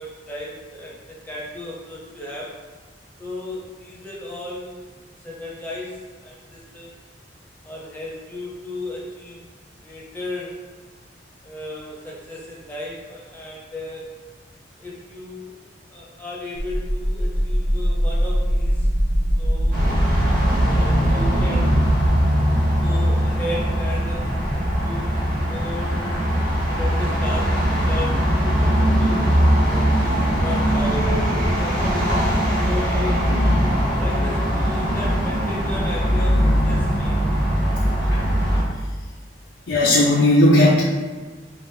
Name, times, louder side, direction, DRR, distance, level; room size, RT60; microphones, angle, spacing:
voice 1, 0.0-2.6 3.2-4.9 5.2-6.9 7.6-9.4 9.8-10.6 11.4-14.2 14.8-15.5 15.9-18.9 19.4-19.8 20.5-22.1 22.8-24.3 24.8-25.2 25.5-26.4 26.7-29.2 29.6-31.9 32.6-33.3 33.9-37.4, left 1 dB, 10° left, -5 dB, 0.9 m, -34 dB
sound 1, 16.6-22.1, equal, 65° right, 0.8 m, -21 dB
sound 2, 19.7-38.6, equal, 45° right, 1.5 m, -21 dB
voice 2, 39.7-40.8, left 1 dB, 75° left, -5 dB, 0.6 m, -15 dB
4.7 x 2.5 x 3.6 m, 1.4 s
head